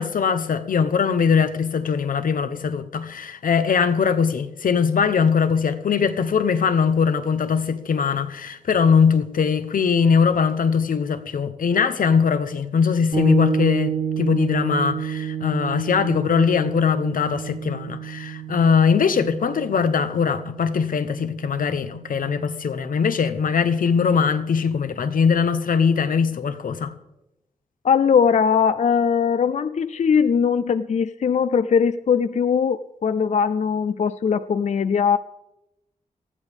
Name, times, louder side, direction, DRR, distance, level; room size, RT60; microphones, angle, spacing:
voice 1, 0.0-26.9, left 6 dB, 85° left, 0.9 m, -21 dB
sound 1, 13.1-22.8, right 8 dB, 75° right, 3.7 m, -30 dB
voice 2, 27.8-35.2, left 6 dB, 55° left, 0.4 m, -20 dB
19.5 x 13.5 x 3.6 m
wide cardioid pair, 105°, 14 cm